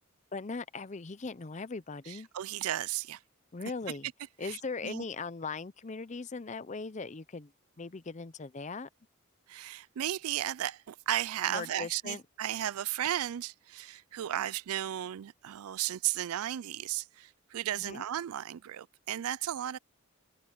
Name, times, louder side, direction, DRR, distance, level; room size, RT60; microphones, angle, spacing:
voice 1, 0.3-2.3 3.5-4.1 4.4-7.5 7.8-8.9 11.5-12.2 17.8-18.0, left 4 dB, 30° left, 0.6 m, -39 dB
voice 2, 2.1-3.2 4.4-5.0 9.5-19.8, right 12 dB, 80° right, 0.4 m, -35 dB
head